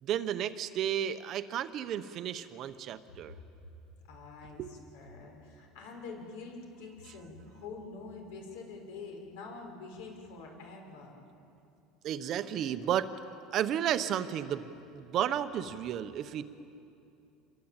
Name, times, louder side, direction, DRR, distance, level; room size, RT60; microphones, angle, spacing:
voice 1, 0.0-3.4 4.6-4.7 12.0-13.1 13.5-16.4, right 10 dB, 35° right, 10 dB, 0.9 m, -33 dB
voice 2, 4.1-11.1, left 4 dB, 80° left, 2 dB, 6.4 m, -46 dB
28.0 x 23.0 x 8.9 m, 2.6 s
cardioid pair, 175°, 0 cm